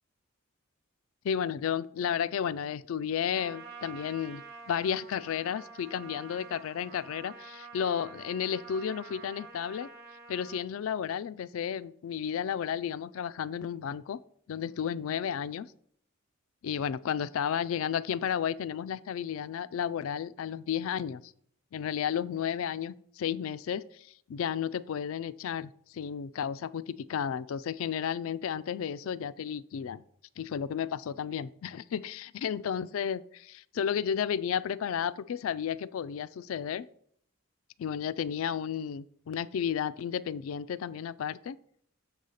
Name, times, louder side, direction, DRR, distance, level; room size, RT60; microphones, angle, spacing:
voice 1, 1.2-9.9 10.3-14.2 14.5-15.7 16.6-21.2 21.7-30.0 30.4-36.9 37.8-41.6, left 8 dB, 70° left, 17 dB, 0.3 m, -33 dB
Trumpet, 3.3-10.6, right 4 dB, 50° right, 1.1 m, -48 dB
7.0 x 4.1 x 6.4 m, 0.64 s
head